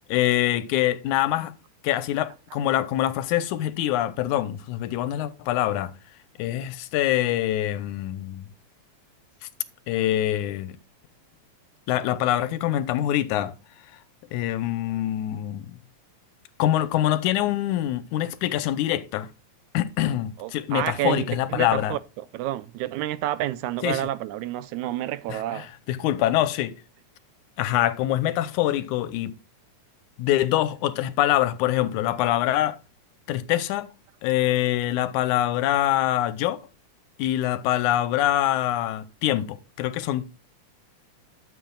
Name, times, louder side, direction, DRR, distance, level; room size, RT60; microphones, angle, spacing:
voice 1, 0.1-1.5 1.8-5.9 6.4-8.5 9.9-10.7 11.9-13.5 14.3-15.7 16.6-19.3 19.7-22.0 23.8-24.0 25.3-26.7 27.6-29.4 30.2-32.8 33.3-33.9 34.2-36.6 37.2-40.2, left 13 dB, 90° left, 2.1 m, -24 dB
voice 2, 20.4-21.2 21.5-22.0 22.3-25.7, right 14 dB, 85° right, 2.0 m, -29 dB
12.5 x 7.5 x 2.3 m
omnidirectional pair, 3.5 m